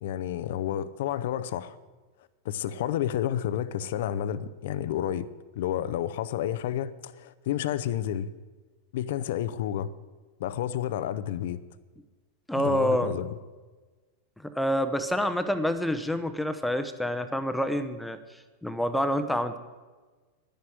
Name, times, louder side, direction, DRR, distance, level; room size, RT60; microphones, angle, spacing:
voice 1, 0.0-1.8 2.4-5.3 5.5-8.3 8.9-9.9 10.4-11.6 12.5-13.3, left 11 dB, 55° left, 15 dB, 0.7 m, -30 dB
voice 2, 12.5-13.1 14.4-18.2 18.6-19.6, equal, ahead, 9 dB, 0.8 m, -27 dB
11.5 x 10.0 x 7.8 m, 1.3 s
figure-of-eight pair, 90°, 0 cm